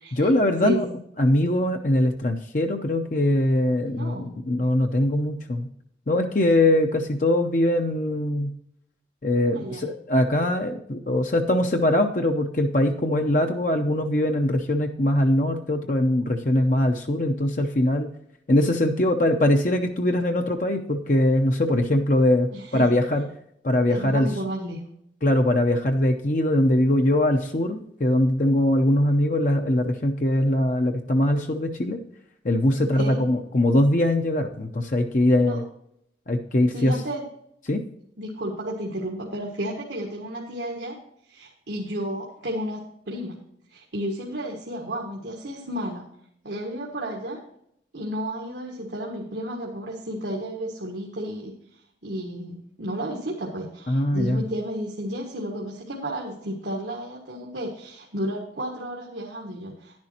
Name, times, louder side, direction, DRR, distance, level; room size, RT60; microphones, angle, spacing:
voice 1, 0.1-0.9 1.2-5.7 6.1-8.5 9.2-18.1 18.5-23.2 23.6-24.3 25.2-32.0 32.4-35.6 36.3-36.9 37.7-37.8 53.9-54.4, left 1 dB, 45° left, 3 dB, 0.7 m, -22 dB
voice 2, 0.6-1.0 3.9-4.3 9.5-9.9 22.5-22.9 23.9-24.8 32.8-33.2 35.4-35.6 36.7-37.2 38.2-41.0 41.3-43.4 43.7-46.1 46.4-47.4 47.9-51.5 52.0-60.0, equal, 80° right, -1 dB, 1.7 m, -32 dB
11.0 x 10.5 x 2.9 m, 0.72 s
head